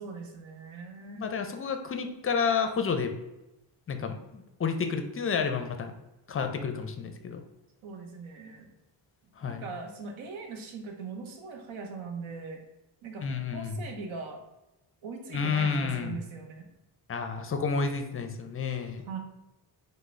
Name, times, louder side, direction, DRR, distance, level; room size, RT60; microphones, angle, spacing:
voice 1, 0.0-1.3 7.8-8.7 9.4-12.6 13.0-14.4 15.0-16.7 19.1-19.2, right 4 dB, 80° right, 3 dB, 0.8 m, -40 dB
voice 2, 1.1-3.1 3.9-5.9 6.3-7.4 9.4-9.7 13.2-13.8 15.3-16.2 17.1-19.0, left 5 dB, 30° left, 7 dB, 0.4 m, -30 dB
3.7 x 2.1 x 3.2 m, 0.95 s
cardioid pair, 60°, 48 cm